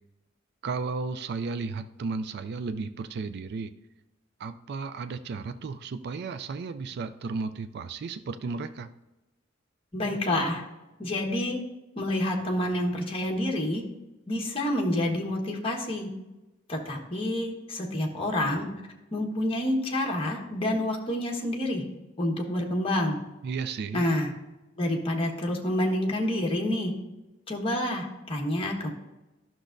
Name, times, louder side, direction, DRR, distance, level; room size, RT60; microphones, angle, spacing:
voice 1, 0.6-3.7 4.4-8.9 23.4-24.0, right 4 dB, 55° right, 10 dB, 0.4 m, -34 dB
voice 2, 9.9-10.6 11.0-11.6 11.9-13.8 14.3-16.1 16.7-18.7 19.1-21.9 22.2-23.2 23.9-24.3 24.8-26.9 27.5-28.9, left 1 dB, 30° left, 0 dB, 1.3 m, -28 dB
12.0 x 6.1 x 2.6 m, 1.0 s
head